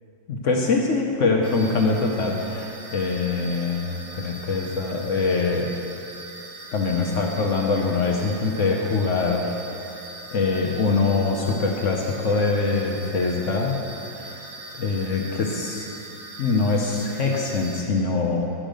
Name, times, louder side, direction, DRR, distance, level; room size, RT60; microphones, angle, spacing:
voice 1, 0.3-5.7 6.7-9.5 10.3-13.8 14.1-14.4 14.8-15.9 16.4-18.4, left 3 dB, 65° left, 0 dB, 0.8 m, -23 dB
sound 1, 1.4-17.8, right 2 dB, 60° right, 1.5 m, -41 dB
9.8 x 5.1 x 6.3 m, 2.8 s
omnidirectional pair, 2.0 m